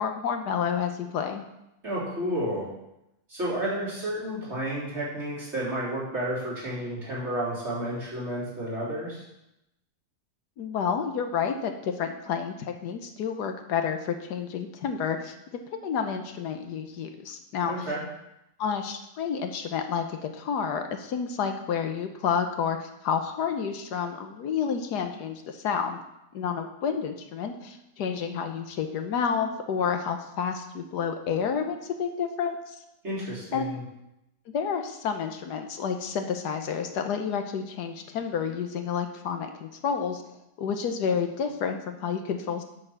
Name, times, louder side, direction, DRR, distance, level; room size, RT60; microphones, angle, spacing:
voice 1, 0.0-1.4 10.6-12.5 12.8-15.3 15.7-17.9 18.6-26.0 26.3-32.6 33.5-33.8 34.5-40.2 40.6-42.6, left 6 dB, 85° left, 6 dB, 1.5 m, -30 dB
voice 2, 1.8-2.7 3.3-9.2 17.7-18.0 33.0-33.8, right 1 dB, 40° right, -8 dB, 3.8 m, -31 dB
7.7 x 6.5 x 6.1 m, 0.87 s
omnidirectional pair, 1.7 m